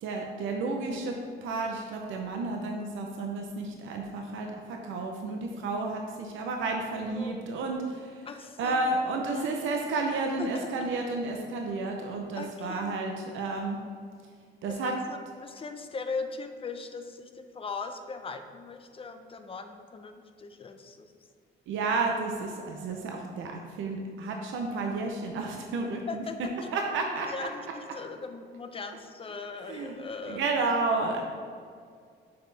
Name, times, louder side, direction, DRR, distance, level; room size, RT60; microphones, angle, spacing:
voice 1, 0.0-1.1 1.4-8.3 8.6-13.8 14.6-14.9 21.7-26.2 26.7-27.3 29.7-30.0 30.3-31.2, right 3 dB, 80° right, 2 dB, 0.6 m, -31 dB
voice 2, 7.1-7.5 8.3-9.5 10.4-10.9 12.4-13.0 14.7-21.1 26.1-26.7 27.2-30.4, left 4 dB, 30° left, 7 dB, 0.5 m, -39 dB
6.6 x 4.3 x 3.3 m, 2.1 s
cardioid pair, 90°, 20 cm